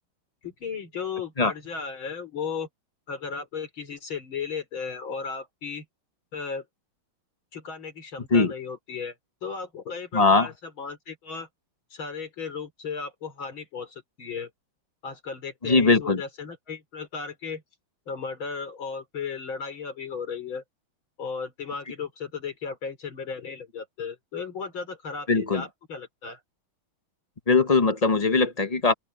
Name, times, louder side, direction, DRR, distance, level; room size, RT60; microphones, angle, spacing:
voice 1, 0.4-2.7 3.1-5.8 6.3-6.6 7.5-9.1 9.4-11.5 11.9-14.5 15.0-17.6 18.1-20.6 21.2-26.4, left 5 dB, 70° left, 4.7 m, -35 dB
voice 2, 10.1-10.5 15.6-16.2 25.3-25.6 27.5-28.9, left 3 dB, 35° left, 0.6 m, -20 dB
open air
omnidirectional pair, 2.3 m